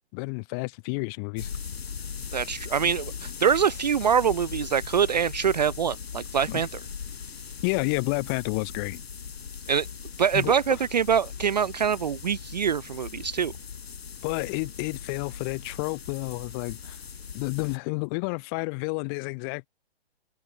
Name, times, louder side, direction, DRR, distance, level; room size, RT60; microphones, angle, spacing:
voice 1, 0.1-1.5 6.5-6.7 7.6-9.0 10.3-10.5 14.2-17.0 17.3-19.7, left 35 dB, 20° left, 3.0 m, -30 dB
sound 1, 1.4-17.8, left 6 dB, 70° left, 2.9 m, -39 dB
voice 2, 2.3-6.8 9.7-9.9 10.2-13.5, right 7 dB, 40° right, 0.5 m, -24 dB
hypercardioid pair, 165°, 32 cm